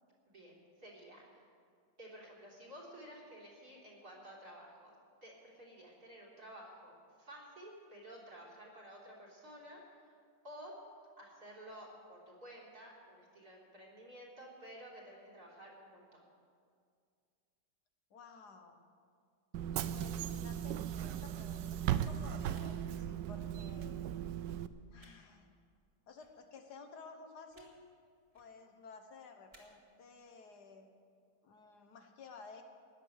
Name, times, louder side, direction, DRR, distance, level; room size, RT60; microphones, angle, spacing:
voice 1, 0.3-1.4 2.0-5.0 5.2-10.2 10.4-10.7 11.2-16.3, equal, 60° right, -1 dB, 4.1 m, -53 dB
voice 2, 18.1-18.8 19.9-24.0 24.9-25.5 26.1-27.7 28.3-30.9 31.4-32.6, left 4 dB, 70° left, 5 dB, 1.8 m, -54 dB
Bus / Engine, 19.5-24.7, right 10 dB, 90° right, 1.3 m, -37 dB
sound 1, 20.9-21.1 22.5-22.6 23.7-23.8 25.0-25.1 26.2-26.3 27.5-27.7 28.2-28.5 29.5-29.6, right 1 dB, 20° right, 2.7 m, -63 dB
17.0 x 11.0 x 6.7 m, 2.2 s
omnidirectional pair, 1.8 m